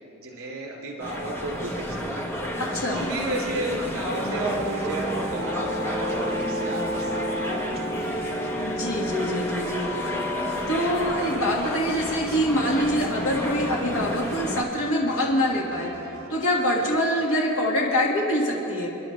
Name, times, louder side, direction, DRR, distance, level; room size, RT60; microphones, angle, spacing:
voice 1, 0.2-2.6 2.8-8.0, right 1 dB, 70° right, -1 dB, 2.8 m, -33 dB
sound 1, 1.0-14.6, equal, 10° left, 1.0 m, -31 dB
voice 2, 2.6-3.0 8.5-10.1 10.7-15.9 16.3-18.9, equal, 70° left, -2 dB, 1.7 m, -25 dB
sound 2, 3.3-17.0, right 3 dB, 50° right, 1.6 m, -45 dB
sound 3, 4.2-10.6, equal, 40° left, 1.9 m, -31 dB
27.5 x 10.5 x 3.2 m, 2.9 s
head